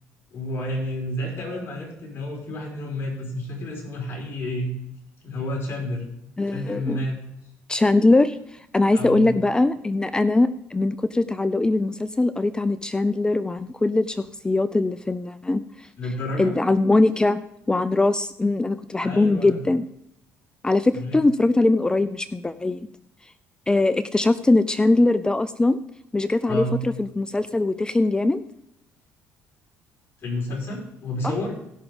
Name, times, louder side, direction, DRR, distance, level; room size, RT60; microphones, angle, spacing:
voice 1, 0.3-4.7 5.2-6.1 6.5-7.2 8.9-9.3 16.0-16.5 19.0-19.6 20.9-21.2 26.5-26.8 30.2-31.5, left 1 dB, 45° left, -1 dB, 5.4 m, -30 dB
voice 2, 6.4-7.0 7.7-15.9 16.4-17.4 17.7-19.9 20.6-22.9 23.7-25.8 26.1-28.4, left 2 dB, 15° left, 14 dB, 0.5 m, -21 dB
16.0 x 6.0 x 5.2 m, 0.78 s
supercardioid pair, 85°, 6 cm